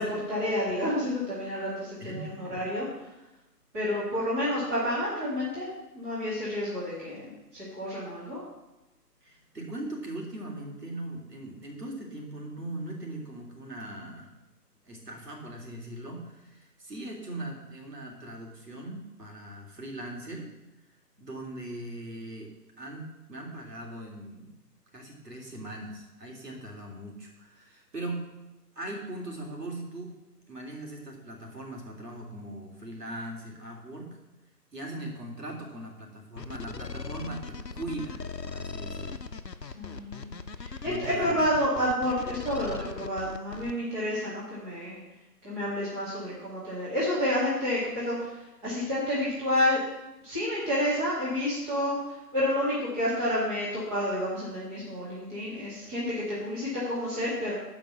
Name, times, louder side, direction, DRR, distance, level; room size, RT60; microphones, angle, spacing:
voice 1, 0.0-2.9 3.7-8.4 39.7-40.3 40.6-45.0 45.4-49.8 50.2-57.5, left 1 dB, 10° right, -10 dB, 1.9 m, -30 dB
voice 2, 2.0-2.6 9.2-14.3 14.9-20.5 21.2-22.5 22.8-24.6 24.9-28.3 28.8-30.1 30.5-34.1 34.7-39.2 40.8-41.3, right 1 dB, 75° right, -1 dB, 3.3 m, -40 dB
sound 1, 36.4-43.7, left 4 dB, 85° left, 0.9 m, -39 dB
11.0 x 5.3 x 6.8 m, 1.0 s
figure-of-eight pair, 155°, 48 cm